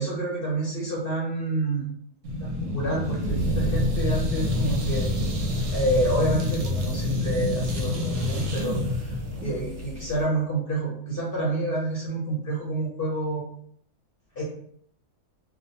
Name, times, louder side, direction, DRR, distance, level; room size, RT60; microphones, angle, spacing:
voice 1, 0.0-1.9 2.4-5.1 5.7-9.2 9.4-13.4 14.4-14.5, right 2 dB, 55° left, -4 dB, 0.6 m, -28 dB
sound 1, 2.2-10.2, left 1 dB, 65° right, 0.9 m, -27 dB
2.5 x 2.1 x 2.7 m, 0.65 s
omnidirectional pair, 1.5 m